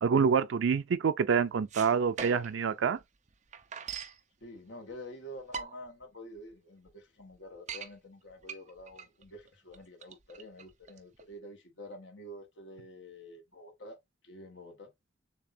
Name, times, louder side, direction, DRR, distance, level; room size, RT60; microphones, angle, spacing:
voice 1, 0.0-3.0, right 6 dB, 85° right, 0.4 m, -27 dB
sound 1, 1.5-2.7 3.0-3.1 3.3-4.2 4.9-5.0 5.4-6.0 6.5-6.6 6.9-7.0 7.3-7.9 8.4-11.3, right 6 dB, 40° right, 0.7 m, -41 dB
voice 2, 4.4-14.0 14.2-14.9, equal, 75° left, 1.6 m, -48 dB
6.9 x 2.8 x 2.6 m
head